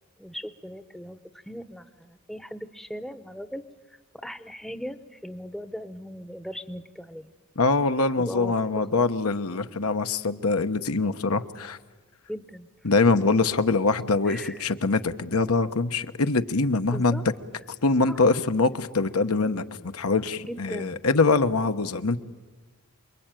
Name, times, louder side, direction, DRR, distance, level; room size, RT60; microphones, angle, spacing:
voice 1, 0.2-7.3 8.2-9.1 12.3-12.7 14.2-14.7 16.9-17.2 18.1-18.2 20.4-21.0, equal, ahead, 11 dB, 0.8 m, -39 dB
voice 2, 7.6-11.8 12.8-17.2 17.8-22.2, left 3 dB, 80° left, 9 dB, 1.1 m, -23 dB
28.5 x 22.0 x 9.1 m, 1.3 s
head